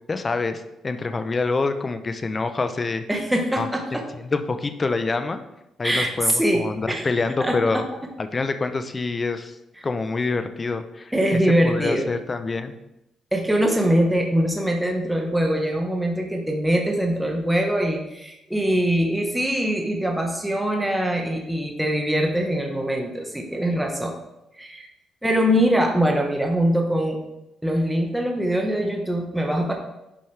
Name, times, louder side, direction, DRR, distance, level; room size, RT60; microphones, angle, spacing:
voice 1, 0.1-3.0 3.6-3.7 4.2-5.4 5.8-7.8 8.2-9.5 9.8-12.7, left 3 dB, 30° left, 9 dB, 0.7 m, -26 dB
voice 2, 3.1-4.0 5.8-7.1 7.4-7.8 9.8-9.9 11.1-12.1 13.3-24.1 24.6-24.9 25.2-27.2 27.6-29.7, equal, 5° right, 1 dB, 1.2 m, -23 dB
10.0 x 5.3 x 3.3 m, 0.89 s
cardioid pair, 90°, 0 cm